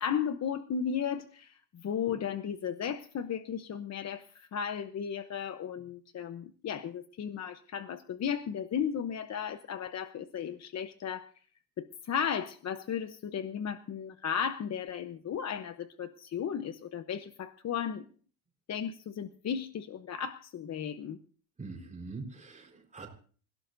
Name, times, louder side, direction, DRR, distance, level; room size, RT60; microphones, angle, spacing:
voice 1, 0.0-11.3 11.8-18.0 18.7-21.2, left 8 dB, 35° left, 9 dB, 0.9 m, -35 dB
voice 2, 21.6-23.1, right 3 dB, 15° right, 2 dB, 4.4 m, -43 dB
27.5 x 17.0 x 2.7 m, 0.42 s
cardioid pair, 135°, 48 cm